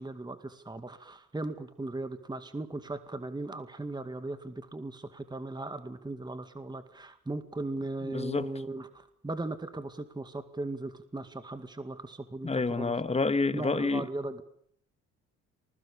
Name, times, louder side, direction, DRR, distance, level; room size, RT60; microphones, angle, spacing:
voice 1, 0.0-13.0 13.5-14.4, right 2 dB, 15° right, 2.1 m, -38 dB
voice 2, 8.0-8.5 12.4-14.1, left 3 dB, 20° left, 1.6 m, -28 dB
27.0 x 21.0 x 7.1 m
cardioid pair, 90°, 30 cm